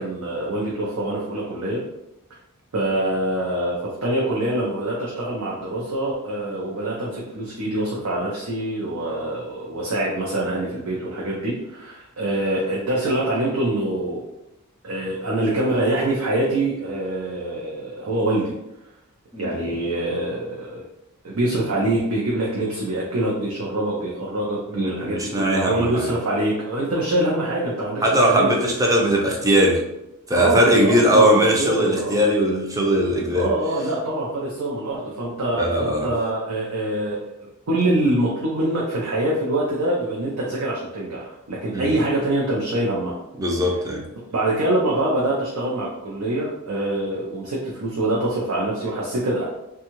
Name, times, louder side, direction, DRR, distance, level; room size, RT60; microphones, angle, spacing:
voice 1, 0.0-1.8 2.7-14.2 14.8-18.5 19.4-20.8 21.2-28.6 30.3-32.2 33.3-37.2 37.7-43.2 44.3-49.5, right 1 dB, 75° right, -5 dB, 0.6 m, -24 dB
voice 2, 24.7-26.1 28.0-29.8 30.3-33.5 35.6-36.1 41.7-41.9 43.4-44.0, equal, 15° right, 0 dB, 0.4 m, -19 dB
2.7 x 2.3 x 2.9 m, 0.90 s
head